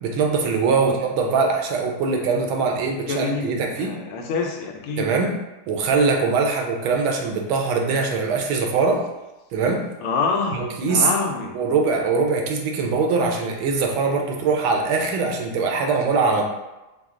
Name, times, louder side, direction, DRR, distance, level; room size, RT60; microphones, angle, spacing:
voice 1, 0.0-3.9 5.0-5.3 5.7-9.0 9.5-9.8 10.5-11.1 11.5-16.4, right 4 dB, 70° right, 1 dB, 1.4 m, -22 dB
voice 2, 0.6-1.0 3.1-5.1 10.0-11.5, left 4 dB, 80° left, 2 dB, 1.5 m, -27 dB
5.6 x 2.0 x 3.6 m, 1.0 s
omnidirectional pair, 2.4 m